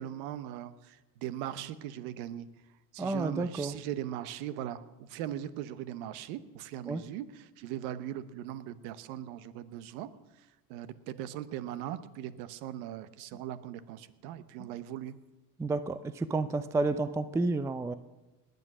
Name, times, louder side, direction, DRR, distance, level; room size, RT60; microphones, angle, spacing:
voice 1, 0.0-2.5 2.9-10.1 10.7-15.1, right 11 dB, 70° right, 14 dB, 1.1 m, -39 dB
voice 2, 3.0-3.8 6.9-7.0 15.6-17.9, right 3 dB, 5° right, 14 dB, 0.4 m, -30 dB
19.5 x 8.2 x 6.1 m, 1.1 s
supercardioid pair, 90°, 50 cm